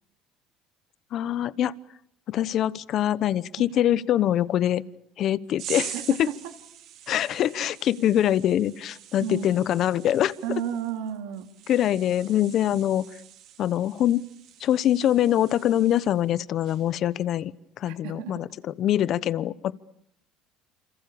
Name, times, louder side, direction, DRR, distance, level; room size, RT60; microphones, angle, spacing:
voice 1, 1.1-1.7 2.3-4.8 5.2-6.3 7.1-10.3 11.7-13.1 13.6-14.2 14.6-17.5 17.8-18.5 18.8-19.7, left 11 dB, 55° left, 18 dB, 1.0 m, -24 dB
sound 1, 5.6-16.3 16.6-17.0, right 11 dB, 65° right, 4.5 m, -43 dB
voice 2, 5.9-6.3 9.2-9.5 10.4-11.5 17.8-18.4, right 9 dB, 80° right, 6 dB, 2.6 m, -32 dB
28.0 x 26.5 x 7.0 m, 0.73 s
supercardioid pair, 95°, 0 cm